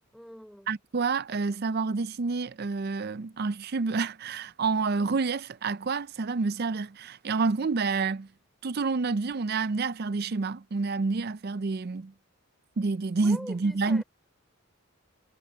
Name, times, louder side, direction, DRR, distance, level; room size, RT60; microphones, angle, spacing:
voice 1, 0.1-0.7 13.2-14.0, equal, ahead, 4.0 m, -44 dB
voice 2, 0.7-8.3 8.6-12.1 12.8-14.0, right 4 dB, 50° right, 0.5 m, -28 dB
head